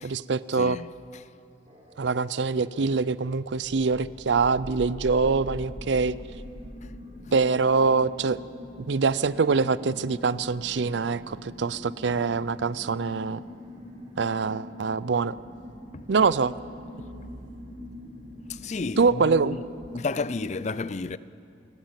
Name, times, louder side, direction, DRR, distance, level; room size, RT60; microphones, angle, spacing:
voice 1, 0.0-0.8 2.0-6.1 7.3-8.4 8.8-13.4 14.2-15.4 16.1-16.5 19.0-19.6, right 4 dB, 75° right, 0.5 m, -24 dB
voice 2, 0.5-1.3 7.2-7.3 15.9-16.1 18.5-19.7 19.9-21.2, left 3 dB, 40° left, 0.5 m, -32 dB
sound 1, 1.7-19.5, equal, 35° right, 4.3 m, -47 dB
sound 2, 4.0-20.6, left 1 dB, 10° left, 2.6 m, -45 dB
28.5 x 14.0 x 7.5 m
head